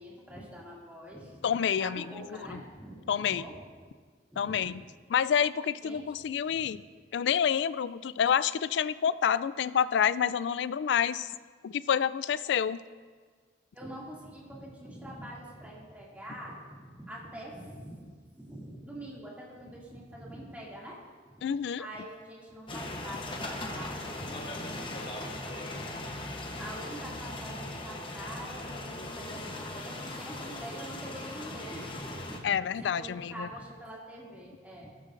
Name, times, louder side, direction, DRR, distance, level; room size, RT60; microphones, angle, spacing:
voice 1, 0.0-1.4 1.8-3.6 4.3-4.8 5.8-6.0 6.5-6.7 13.7-16.6 17.0-21.0 21.3-21.4 21.8-25.9 26.3-34.9, right 1 dB, 10° right, -5 dB, 2.3 m, -45 dB
voice 2, 1.4-2.1 2.5-2.6 3.1-3.4 4.4-4.8 5.1-6.8 7.1-11.3 11.6-12.8 21.4-21.9 32.4-33.5, left 8 dB, 75° left, 16 dB, 0.3 m, -28 dB
sound 1, 22.7-32.4, left 2 dB, 25° left, 0.9 m, -39 dB
14.0 x 12.5 x 2.6 m, 1.5 s
head